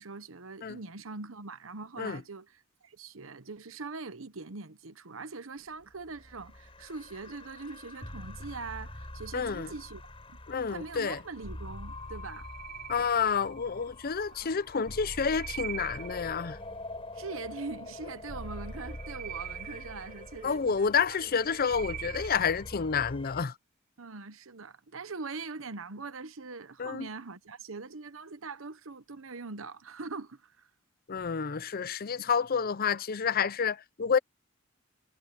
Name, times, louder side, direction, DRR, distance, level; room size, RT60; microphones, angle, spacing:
voice 1, 0.0-10.0 10.7-12.5 14.3-14.6 17.1-21.2 24.0-30.7 32.2-32.3, right 4 dB, 85° right, 1.1 m, -42 dB
sound 1, 5.8-23.4, left 1 dB, 30° left, 3.9 m, -45 dB
voice 2, 9.3-9.7 10.5-11.2 12.9-16.6 20.4-23.5 26.8-27.1 31.1-34.2, left 6 dB, 45° left, 0.6 m, -29 dB
sound 2, 12.1-13.8 14.7-16.6 18.5-20.6 21.1-22.7, right 12 dB, 50° right, 4.1 m, -44 dB
head